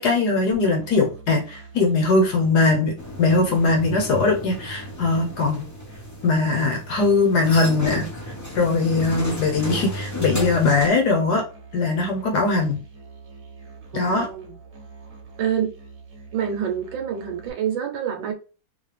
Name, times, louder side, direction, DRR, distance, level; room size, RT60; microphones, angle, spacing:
voice 1, 0.0-5.7 6.2-8.1 8.5-11.4 11.7-12.8 13.9-14.3, left 3 dB, 60° left, 1.3 m, -20 dB
Musical instrument, 0.5-17.5, right 4 dB, 50° right, 1.3 m, -45 dB
sound 1, 3.0-10.9, left 1 dB, 20° left, 0.5 m, -33 dB
voice 2, 13.9-14.6 15.4-15.7 16.3-18.3, right 8 dB, 80° right, 1.5 m, -27 dB
4.0 x 2.7 x 3.3 m
omnidirectional pair, 2.1 m